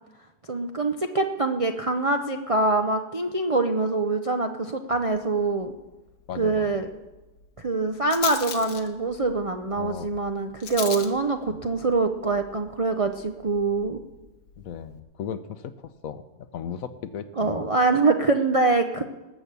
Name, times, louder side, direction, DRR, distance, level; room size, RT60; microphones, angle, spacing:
voice 1, 0.5-5.7 6.3-6.9 7.6-14.0 17.4-19.0, right 3 dB, 40° right, 5 dB, 0.4 m, -24 dB
Rattle, 5.1-15.0, left 7 dB, 90° left, 1.7 m, -41 dB
voice 2, 6.3-6.8 9.8-10.1 11.5-11.6 14.6-17.7, left 8 dB, 65° left, 12 dB, 1.1 m, -36 dB
19.5 x 7.8 x 6.9 m, 1.1 s
omnidirectional pair, 1.7 m